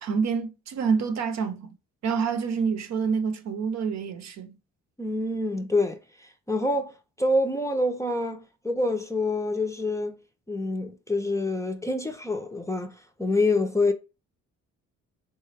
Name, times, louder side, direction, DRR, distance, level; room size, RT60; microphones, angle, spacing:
voice 1, 0.0-1.7 2.0-4.6, right 5 dB, 60° right, 0.7 m, -27 dB
voice 2, 5.0-6.0 6.5-6.9 7.2-10.2 10.5-13.9, left 2 dB, 10° left, 0.5 m, -26 dB
3.9 x 2.2 x 3.3 m
cardioid pair, 90°, 30 cm